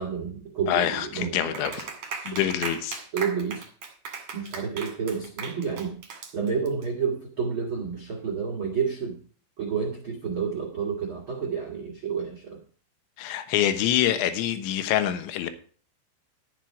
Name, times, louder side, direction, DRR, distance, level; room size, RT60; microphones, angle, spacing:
voice 1, 0.0-1.8 2.2-2.4 3.1-3.6 4.3-6.0 6.3-9.2 9.6-12.6, right 6 dB, 85° right, 0 dB, 1.1 m, -30 dB
voice 2, 0.7-1.9 2.3-3.0 13.2-15.5, left 11 dB, 75° left, 10 dB, 3.3 m, -25 dB
Clapping, 1.5-6.8, right 5 dB, 45° right, 1.9 m, -37 dB
12.0 x 8.2 x 4.7 m, 0.44 s
omnidirectional pair, 5.5 m